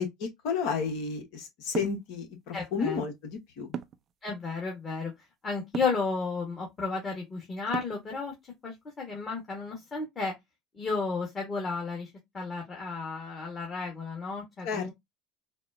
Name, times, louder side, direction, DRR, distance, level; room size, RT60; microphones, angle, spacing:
voice 1, 0.0-3.7 14.6-14.9, left 5 dB, 65° left, 1.0 m, -32 dB
sound 1, 1.7-2.0 3.7-4.1 5.7-6.0 7.7-8.1, right 8 dB, 45° right, 0.4 m, -36 dB
voice 2, 2.5-3.0 4.2-5.1 5.4-8.3 8.6-10.3 10.8-12.1 12.3-14.9, left 4 dB, 30° left, 1.3 m, -33 dB
4.1 x 2.0 x 2.5 m
hypercardioid pair, 75°, 0 cm